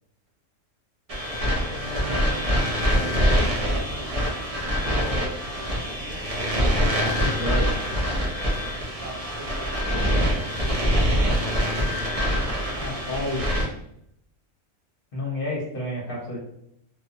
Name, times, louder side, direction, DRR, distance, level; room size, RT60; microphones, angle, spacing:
sound 1, 1.1-13.7, equal, 55° right, 0.4 m, -24 dB
voice 1, 1.7-4.3 4.8-5.3 9.0-9.7, right 2 dB, 70° right, -3 dB, 1.2 m, -38 dB
voice 2, 7.0-7.8 12.8-13.4 15.1-16.4, left 1 dB, 50° left, -4 dB, 0.8 m, -30 dB
2.4 x 2.3 x 2.6 m, 0.75 s
omnidirectional pair, 1.4 m